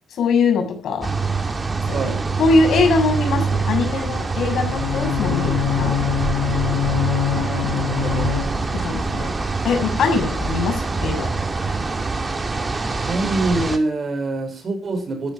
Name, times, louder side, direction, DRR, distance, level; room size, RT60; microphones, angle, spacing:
voice 1, 0.1-1.1 1.9-6.0 7.6-7.8 8.8-9.3 9.6-11.4, left 4 dB, 65° left, 6.9 m, -22 dB
sound 1, 1.0-13.8, right 4 dB, 25° right, 2.5 m, -25 dB
voice 2, 1.9-2.2 7.7-8.4 13.0-15.3, right 2 dB, 40° right, 5.8 m, -25 dB
Bowed string instrument, 4.7-8.9, left 10 dB, 80° left, 4.8 m, -24 dB
14.0 x 11.0 x 5.9 m
cardioid pair, 90°, 0 cm